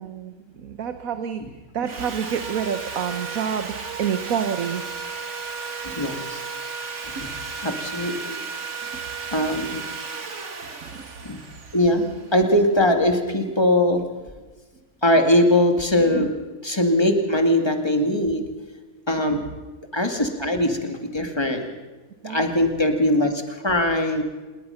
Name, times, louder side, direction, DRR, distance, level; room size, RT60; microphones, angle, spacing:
voice 1, 0.0-1.4 1.7-4.8 7.1-7.2 8.9-9.0 9.6-9.7 10.8-11.1 16.1-16.3 19.3-19.4 22.2-22.5, right 8 dB, 80° right, 9 dB, 1.5 m, -28 dB
Sawing, 1.8-12.9, right 5 dB, 60° right, 2.0 m, -34 dB
voice 2, 5.8-6.4 7.2-7.3 7.6-8.4 9.3-9.8 11.2-11.4 11.7-14.0 15.0-16.3 16.6-18.5 19.1-19.4 19.9-21.7 22.2-24.2, left 1 dB, 20° left, 4 dB, 2.3 m, -21 dB
27.0 x 21.0 x 5.8 m, 1.3 s
omnidirectional pair, 1.4 m